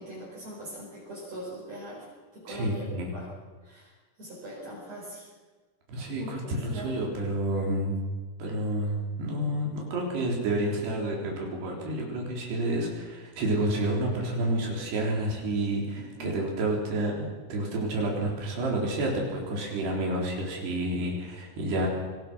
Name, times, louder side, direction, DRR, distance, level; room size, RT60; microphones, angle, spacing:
voice 1, 0.0-2.1 2.3-3.3 3.6-3.9 4.2-5.2 6.2-6.3 6.7-6.9 16.2-16.4, equal, 40° right, -5 dB, 6.2 m, -41 dB
voice 2, 2.5-3.1 5.9-8.0 8.4-21.9, right 1 dB, 85° right, -1 dB, 5.9 m, -29 dB
25.5 x 19.5 x 6.2 m, 1.4 s
omnidirectional pair, 4.6 m